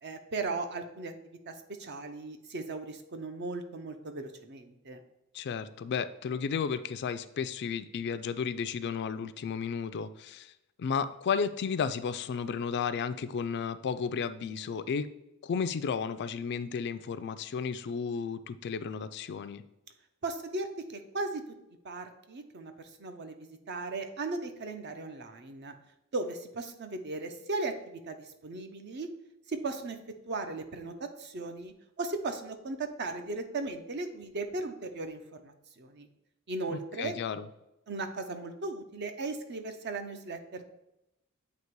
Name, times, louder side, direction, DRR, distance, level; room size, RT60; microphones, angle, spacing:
voice 1, 0.0-5.0 20.2-21.4 21.8-22.7 23.0-25.8 26.1-29.1 29.5-30.0 30.3-36.1 36.5-37.1 37.9-40.7, right 3 dB, 50° right, 7 dB, 0.7 m, -37 dB
voice 2, 5.3-10.5 10.8-15.1 15.4-19.6 36.7-37.5, left 6 dB, 50° left, 13 dB, 0.3 m, -33 dB
8.0 x 2.9 x 4.6 m, 0.88 s
head